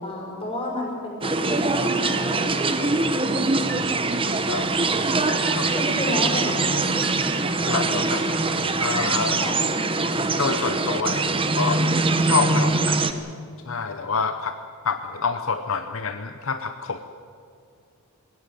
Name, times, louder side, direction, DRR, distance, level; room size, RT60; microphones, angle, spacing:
voice 1, 0.0-3.1 5.7-7.0 9.4-9.6, left 1 dB, 25° left, -2 dB, 6.1 m, -31 dB
sound 1, 1.2-13.1, right 3 dB, 25° right, 1.0 m, -23 dB
sound 2, 1.9-2.5 2.9-4.2 4.6-5.9 6.3-7.6 8.0-8.5, right 1 dB, 10° left, 7.3 m, -42 dB
voice 2, 4.5-4.8 5.6-5.7 7.7-8.3 8.8-9.4 10.4-11.3 11.6-11.8 12.2-13.0 13.7-14.6 14.8-17.0, left 5 dB, 65° left, 7 dB, 0.9 m, -27 dB
20.5 x 16.5 x 9.3 m, 2.4 s
head